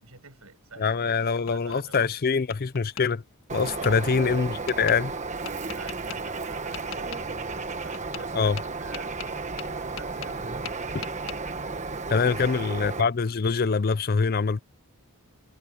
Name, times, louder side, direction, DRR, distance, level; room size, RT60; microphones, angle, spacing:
voice 1, 0.0-2.1 3.7-4.2 5.7-9.1 9.7-10.8 12.2-12.7, right 4 dB, 75° right, 6.2 m, -48 dB
voice 2, 0.8-3.2 3.5-5.1 8.3-8.6 12.1-14.6, left 5 dB, 45° left, 0.5 m, -24 dB
Tap, 1.3-2.0 2.5-3.1 3.8-3.9 4.7-5.0 5.4-6.2 6.7-7.2 7.9-8.3 8.6-10.4 10.6-11.4, left 8 dB, 65° left, 1.6 m, -40 dB
Bird, 3.5-13.0, right 3 dB, 30° right, 1.2 m, -33 dB
head